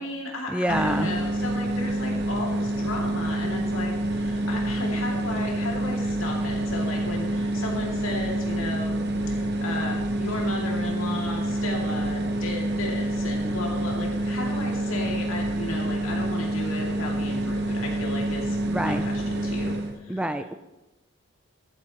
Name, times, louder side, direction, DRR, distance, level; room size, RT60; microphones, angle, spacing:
voice 1, 0.0-9.0 9.3-20.4, left 2 dB, 80° left, -2 dB, 2.5 m, -34 dB
voice 2, 0.5-1.1 18.7-19.0 20.1-20.5, right 1 dB, 5° right, 9 dB, 0.3 m, -26 dB
sound 1, 0.7-20.0, right 1 dB, 55° right, 1.0 m, -27 dB
14.0 x 9.2 x 3.0 m, 1.0 s
head